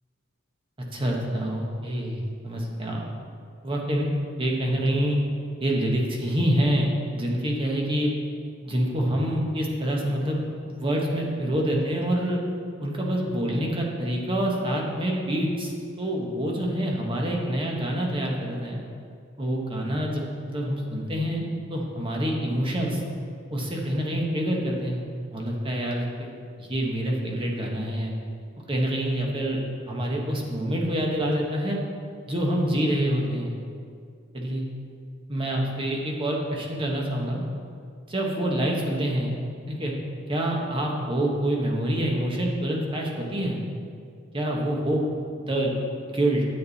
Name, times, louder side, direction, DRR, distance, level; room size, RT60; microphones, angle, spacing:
voice 1, 0.8-3.1 3.6-4.1 4.4-5.2 5.6-8.1 8.6-12.4 12.8-18.8 19.4-23.0 23.5-25.0 25.3-26.3 26.6-28.1 28.7-29.6 29.9-31.8 32.3-33.5 34.3-34.6 35.3-37.4 38.1-39.3 39.7-39.9 40.3-43.6 44.3-45.0 45.5-45.7 46.1-46.4, right 1 dB, 25° right, -1 dB, 1.2 m, -26 dB
9.9 x 7.7 x 4.1 m, 2.3 s
head